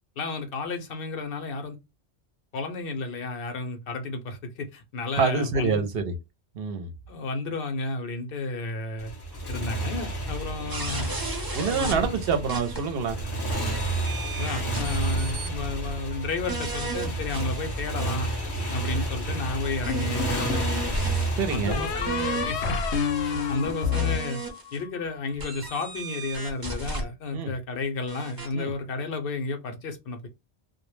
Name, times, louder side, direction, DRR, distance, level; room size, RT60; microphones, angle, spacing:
voice 1, 0.2-1.8 2.5-5.8 7.1-9.1 9.5-11.1 11.7-12.2 14.4-18.3 18.7-20.8 21.5-22.8 23.2-24.4 24.7-30.3, left 3 dB, 65° left, 0.8 m, -32 dB
voice 2, 5.1-6.0 6.6-6.9 11.5-13.2 21.4-21.9 27.3-27.5 28.5-28.7, right 5 dB, 65° right, 0.7 m, -26 dB
Motorcycle, 9.0-24.1, right 1 dB, 30° left, 0.6 m, -31 dB
sound 1, 10.7-13.2 13.5-15.6 15.9-16.0 16.5-18.1 18.5-24.8 25.4-27.0 28.1-28.5, right 3 dB, 25° right, 0.5 m, -35 dB
sound 2, 19.9-20.7 21.7-25.0, left 7 dB, 90° left, 0.9 m, -29 dB
2.1 x 2.0 x 3.0 m
omnidirectional pair, 1.1 m